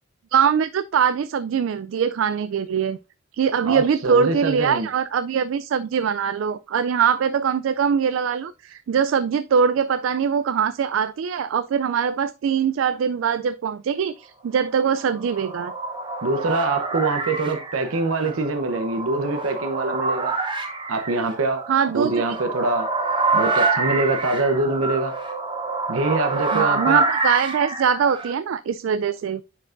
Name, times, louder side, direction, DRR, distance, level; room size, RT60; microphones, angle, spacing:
voice 1, 0.3-3.0 3.3-15.7 21.7-22.1 26.5-29.4, right 7 dB, 65° right, 0.3 m, -22 dB
voice 2, 3.6-4.9 16.2-20.4 20.9-21.7 21.9-22.9 23.3-25.1 25.9-27.0, right 3 dB, 85° right, 0.8 m, -24 dB
sound 1, 14.9-28.3, right 3 dB, 25° right, 0.9 m, -27 dB
9.7 x 4.6 x 2.5 m
head